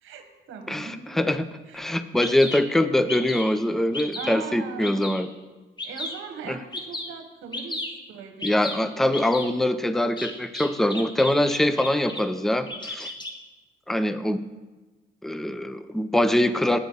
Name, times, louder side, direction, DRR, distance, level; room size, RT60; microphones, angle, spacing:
voice 1, 0.0-1.2 1.7-1.9 4.1-5.1 5.8-7.8 8.1-8.8 9.1-9.3, right 6 dB, 85° right, 5 dB, 1.1 m, -39 dB
voice 2, 0.7-1.5 1.7-5.3 6.5-6.6 8.4-13.1 13.9-14.4 15.2-16.8, left 1 dB, ahead, 12 dB, 0.4 m, -23 dB
Bird vocalization bird call bird song, 1.7-1.8 2.2-2.6 3.1-3.5 3.9-4.3 4.8-5.2 5.8-6.2 6.7-7.1 7.5-7.9 8.4-8.8 9.1-9.5 10.2-12.2 12.5-13.3, left 2 dB, 20° left, 1.1 m, -33 dB
8.0 x 5.1 x 6.7 m, 1.2 s
cardioid pair, 90°, 20 cm